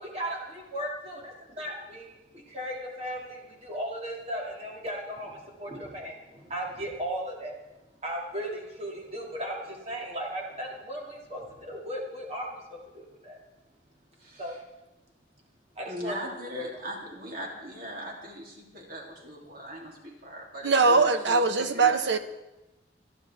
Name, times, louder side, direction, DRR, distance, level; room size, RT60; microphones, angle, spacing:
voice 1, 0.0-7.5 8.0-13.4 14.4-14.6 15.8-16.2 16.5-16.7, equal, 35° right, 2.4 m, -36 dB
voice 2, 14.2-14.6 15.9-21.4 21.7-22.0, equal, 55° right, 3.2 m, -39 dB
voice 3, 20.6-22.2, right 4 dB, 70° right, 1.0 m, -22 dB
26.5 x 10.5 x 3.6 m
head